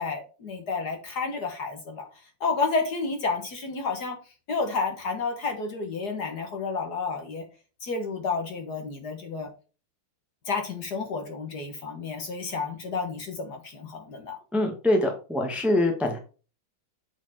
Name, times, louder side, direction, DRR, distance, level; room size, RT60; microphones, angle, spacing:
voice 1, 0.0-2.0 2.4-4.2 4.5-7.4 7.8-9.5 10.5-14.4, left 4 dB, 55° left, 4 dB, 1.7 m, -30 dB
voice 2, 14.5-16.2, left 1 dB, ahead, 3 dB, 1.2 m, -24 dB
7.4 x 4.5 x 4.2 m, 0.34 s
omnidirectional pair, 2.3 m